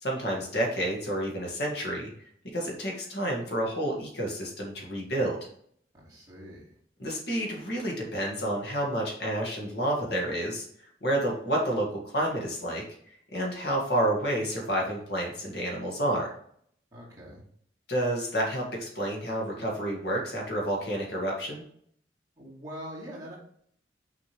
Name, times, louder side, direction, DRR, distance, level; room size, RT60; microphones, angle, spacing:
voice 1, 0.0-2.1 2.5-5.4 7.0-10.7 11.0-12.8 13.3-16.3 17.9-21.6, right 1 dB, 60° left, -1 dB, 2.0 m, -29 dB
voice 2, 5.9-6.7 16.9-17.4 22.4-23.4, equal, 20° right, -6 dB, 2.3 m, -43 dB
6.2 x 5.3 x 3.3 m, 0.63 s
head